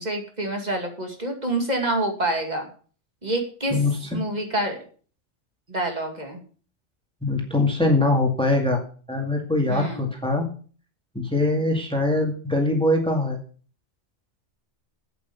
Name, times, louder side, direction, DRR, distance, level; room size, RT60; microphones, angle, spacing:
voice 1, 0.0-2.7 3.2-3.8 4.1-4.8 5.7-6.4 9.7-10.1, right 1 dB, 35° right, 3 dB, 2.4 m, -27 dB
voice 2, 3.7-4.2 7.2-8.8 9.1-10.5 11.1-13.4, left 2 dB, 5° left, 1 dB, 2.0 m, -22 dB
8.4 x 8.2 x 6.9 m, 0.42 s
omnidirectional pair, 1.2 m